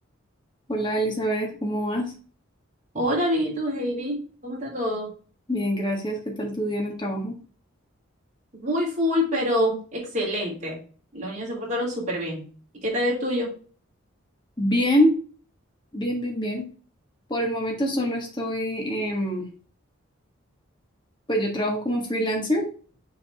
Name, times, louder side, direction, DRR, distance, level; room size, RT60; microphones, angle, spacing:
voice 1, 0.7-2.1 5.5-7.3 14.6-15.1 15.9-16.7 17.3-19.4 21.3-22.6, equal, 20° left, -1 dB, 1.5 m, -25 dB
voice 2, 2.9-5.1 8.6-10.8 11.1-12.4 12.8-13.5, left 1 dB, 35° right, -5 dB, 3.2 m, -26 dB
7.0 x 4.0 x 3.5 m, 0.41 s
head